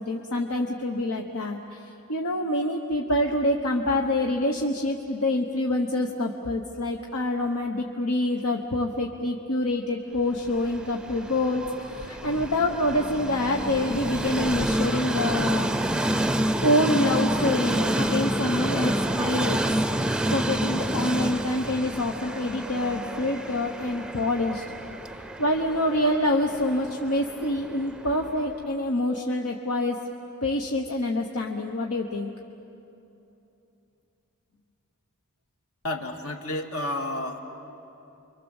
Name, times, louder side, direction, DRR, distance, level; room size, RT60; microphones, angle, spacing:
voice 1, 0.0-1.8 2.1-15.7 16.6-19.6 20.3-24.6 25.4-30.0 30.4-32.3, left 1 dB, 85° left, 1 dB, 1.3 m, -26 dB
Train, 10.5-28.5, right 1 dB, 5° right, 0.5 m, -29 dB
voice 2, 35.8-37.4, left 1 dB, 70° left, 3 dB, 2.3 m, -31 dB
29.5 x 24.5 x 7.3 m, 2.9 s
head